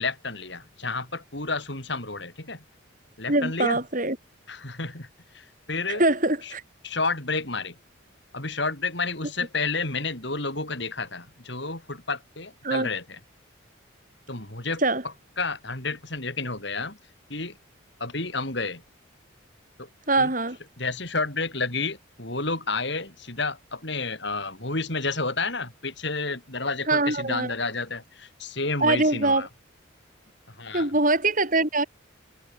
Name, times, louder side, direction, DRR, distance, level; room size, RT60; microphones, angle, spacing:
voice 1, 0.0-2.6 3.2-3.8 4.5-5.1 5.3-6.0 6.4-6.5 6.8-7.8 8.3-13.2 14.3-14.8 15.4-17.0 17.3-17.6 18.0-18.8 19.8-19.9 20.2-20.3 20.8-29.5 30.6-30.9, left 3 dB, 55° left, 6.4 m, -30 dB
voice 2, 3.3-4.2 5.9-6.6 12.6-12.9 14.8-15.0 20.1-20.6 26.9-27.5 28.8-29.5 30.7-31.8, right 2 dB, 40° right, 6.3 m, -23 dB
head